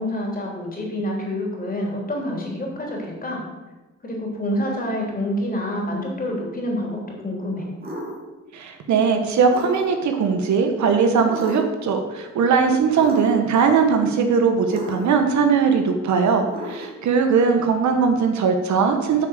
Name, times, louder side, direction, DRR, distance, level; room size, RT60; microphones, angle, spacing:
voice 1, 0.0-3.4 4.0-7.7, left 1 dB, 30° left, -1 dB, 3.5 m, -27 dB
sound 1, 7.8-8.2 9.5-10.1 11.2-11.8 12.9-13.5 14.7-15.3 16.4-17.1, right 1 dB, 30° right, 2.4 m, -33 dB
voice 2, 8.5-19.3, right 5 dB, 70° right, 5 dB, 1.3 m, -19 dB
9.1 x 5.0 x 7.3 m, 1.1 s
cardioid pair, 90°, 30 cm